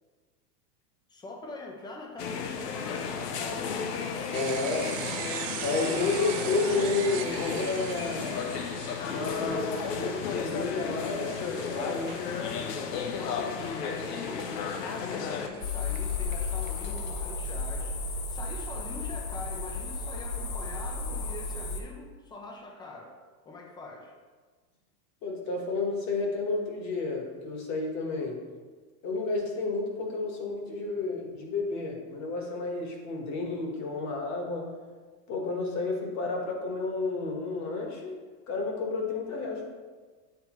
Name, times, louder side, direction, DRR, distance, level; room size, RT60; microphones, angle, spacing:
voice 1, 1.1-4.4 13.0-23.1 23.4-24.1, left 2 dB, 10° left, 2 dB, 0.5 m, -44 dB
sound 1, 2.2-15.5, left 6 dB, 80° left, 0.8 m, -33 dB
voice 2, 4.3-4.9 5.6-8.6 9.1-12.2 25.2-28.4 29.0-34.7 35.3-38.2 38.5-39.6, left 3 dB, 35° left, 1 dB, 1.4 m, -31 dB
sound 2, 4.3-16.9, right 11 dB, 55° right, 0.6 m, -42 dB
sound 3, 15.6-21.8, left 4 dB, 55° left, 1.0 m, -33 dB
9.4 x 3.4 x 3.1 m, 1.4 s
supercardioid pair, 130°, 47 cm